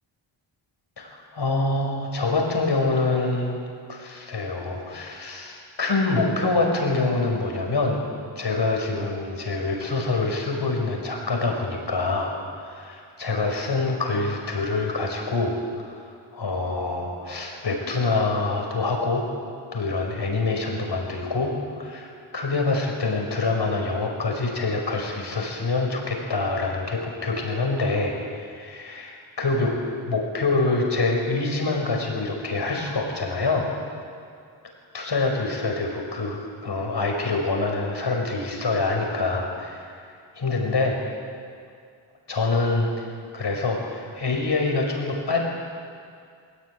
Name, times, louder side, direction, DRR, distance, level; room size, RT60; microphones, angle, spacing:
voice 1, 1.0-3.6 3.9-8.0 8.4-15.5 16.3-19.3 19.7-29.7 30.1-33.7 34.9-39.8 40.4-41.0 42.3-42.9 43.3-45.4, left 3 dB, 55° left, 1 dB, 5.4 m, -25 dB
20.5 x 18.0 x 9.5 m, 2.3 s
wide cardioid pair, 85°, 48 cm